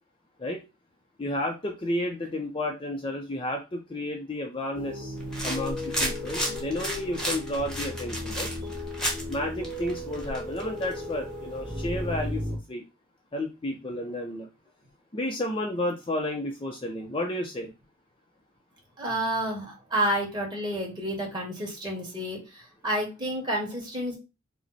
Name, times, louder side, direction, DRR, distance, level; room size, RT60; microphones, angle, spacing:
voice 1, 1.2-5.2 5.4-8.5 9.3-12.4 12.7-12.8 13.3-14.5 15.1-17.7, left 1 dB, 25° left, 2 dB, 0.5 m, -31 dB
sound 1, 4.7-12.6, left 1 dB, 40° right, 1.9 m, -36 dB
sound 2, 5.2-12.3, equal, 5° left, 1.0 m, -34 dB
voice 2, 19.0-24.2, right 1 dB, 20° right, -1 dB, 1.6 m, -30 dB
4.9 x 2.1 x 4.1 m, 0.27 s
head